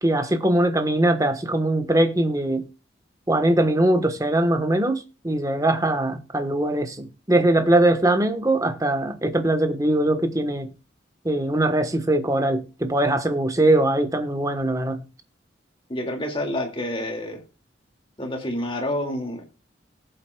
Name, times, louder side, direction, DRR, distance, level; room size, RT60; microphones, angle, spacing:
voice 1, 0.0-2.7 3.3-10.7 11.2-15.0, right 1 dB, 20° right, 1.1 m, -21 dB
voice 2, 15.9-17.4 18.2-19.4, left 1 dB, 30° left, 2.2 m, -28 dB
18.5 x 7.9 x 2.3 m
head